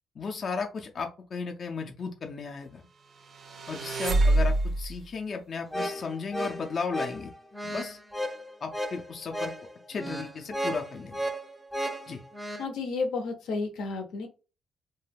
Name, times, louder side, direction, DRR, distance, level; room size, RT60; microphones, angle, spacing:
voice 1, 0.2-2.9 3.7-7.3 7.6-8.0 8.6-9.5 9.9-11.3 12.1-12.2, left 5 dB, 50° left, 3 dB, 0.5 m, -35 dB
sound 1, 3.2-5.0, right 2 dB, 60° right, 0.5 m, -25 dB
sound 2, 5.7-12.6, equal, ahead, 0.5 m, -34 dB
voice 2, 12.6-14.3, left 4 dB, 85° left, 4 dB, 0.7 m, -31 dB
2.3 x 2.2 x 3.3 m, 0.33 s
cardioid pair, 90°, 0 cm